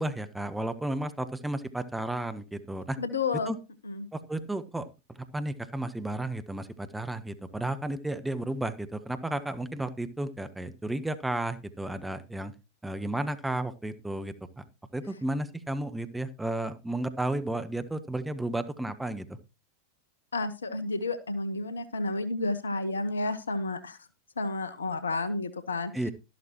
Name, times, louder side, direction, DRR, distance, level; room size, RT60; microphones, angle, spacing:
voice 1, 0.0-3.0 3.5-3.6 4.1-4.9 5.3-12.5 12.8-14.6 14.9-19.4 25.9-26.1, right 1 dB, 5° right, 11 dB, 1.0 m, -33 dB
voice 2, 3.0-3.5 3.8-4.1 20.3-24.0 24.4-25.9, left 3 dB, 70° left, 12 dB, 1.2 m, -31 dB
13.0 x 11.5 x 2.9 m, 0.28 s
figure-of-eight pair, 90°, 0 cm